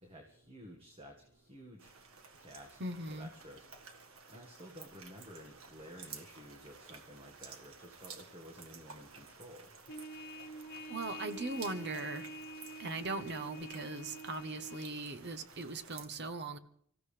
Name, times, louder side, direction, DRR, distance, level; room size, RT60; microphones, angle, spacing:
voice 1, 0.0-1.9 2.4-2.8 3.1-3.9 4.3-9.7, equal, 25° right, 1.8 m, -53 dB
sound 1, 1.8-16.1, right 5 dB, 85° right, 1.8 m, -54 dB
voice 2, 2.8-3.3 10.9-12.3 12.8-16.6, right 2 dB, 55° right, 1.1 m, -39 dB
Trumpet, 9.9-14.9, right 1 dB, 55° left, 1.3 m, -47 dB
25.0 x 15.5 x 3.4 m
head